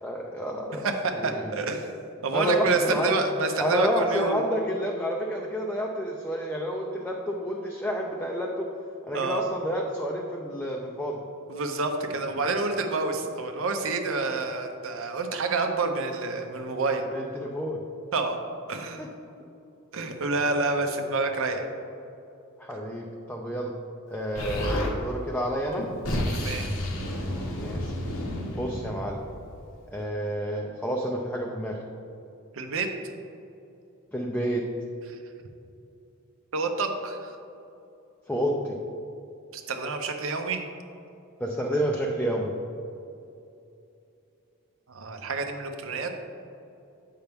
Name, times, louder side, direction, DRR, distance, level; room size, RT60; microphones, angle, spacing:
voice 1, 0.0-0.9 1.2-1.5 2.3-3.1 3.6-8.7 9.0-11.2 17.1-17.8 19.0-19.1 19.4-19.5 22.6-23.7 24.1-25.8 27.6-27.9 28.5-29.2 29.9-31.8 34.1-34.7 38.3-38.8 41.4-42.5, equal, 5° left, -1 dB, 0.4 m, -29 dB
voice 2, 0.8-1.9 2.2-4.4 9.1-9.4 11.5-17.1 18.1-18.4 18.7-19.1 19.9-21.6 26.3-26.7 32.5-32.9 35.1-35.2 36.5-37.3 39.5-40.7 44.9-46.1, right 3 dB, 65° right, 5 dB, 0.7 m, -28 dB
Explosion, 24.4-24.9 25.7-29.6, left 1 dB, 75° left, 1.1 m, -31 dB
8.0 x 5.6 x 3.5 m, 2.7 s
head